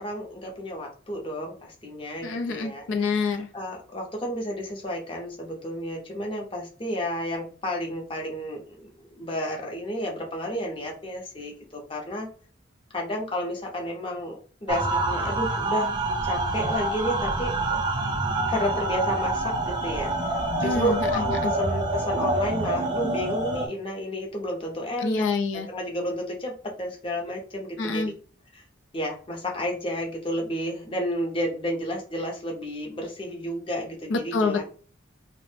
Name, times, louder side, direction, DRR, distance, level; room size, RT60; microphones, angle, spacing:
voice 1, 0.0-3.2 3.5-8.9 9.2-12.3 12.9-15.9 16.2-17.8 18.5-20.1 20.6-25.2 25.7-26.5 26.8-28.1 28.5-28.6 28.9-34.6, equal, 25° left, 0 dB, 0.6 m, -31 dB
voice 2, 2.2-3.5 20.6-21.5 25.0-25.7 27.8-28.1 34.1-34.6, left 4 dB, 80° left, 5 dB, 0.4 m, -27 dB
sound 1, 14.7-23.7, right 2 dB, 20° right, 0.4 m, -26 dB
2.4 x 2.0 x 3.1 m, 0.40 s
head